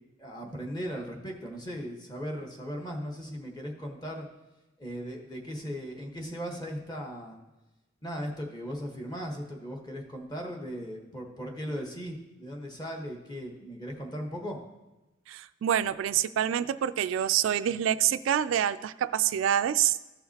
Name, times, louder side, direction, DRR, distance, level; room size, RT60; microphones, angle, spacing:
voice 1, 0.2-4.3 4.8-7.4 8.0-14.6, equal, 20° left, 1 dB, 1.2 m, -37 dB
voice 2, 15.3-20.0, right 10 dB, 90° right, 14 dB, 0.3 m, -26 dB
14.0 x 5.7 x 2.8 m, 1.1 s
head